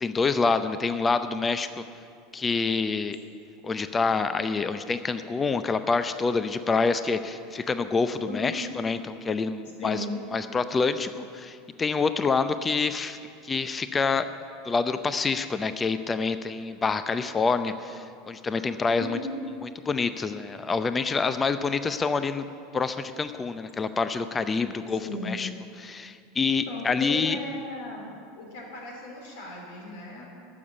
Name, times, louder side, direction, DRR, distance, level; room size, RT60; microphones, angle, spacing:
voice 1, 0.0-1.8 2.3-3.2 3.6-10.0 10.3-13.2 13.4-14.3 14.6-19.2 19.6-22.4 22.7-25.5 25.8-27.4, left 4 dB, 20° left, 11 dB, 0.6 m, -27 dB
voice 2, 8.3-8.6 9.8-10.2 19.0-19.4 25.0-25.4 26.7-28.1 28.4-30.2, left 1 dB, 65° left, -1 dB, 3.5 m, -36 dB
12.0 x 7.1 x 8.1 m, 2.3 s
hypercardioid pair, 80°, 0 cm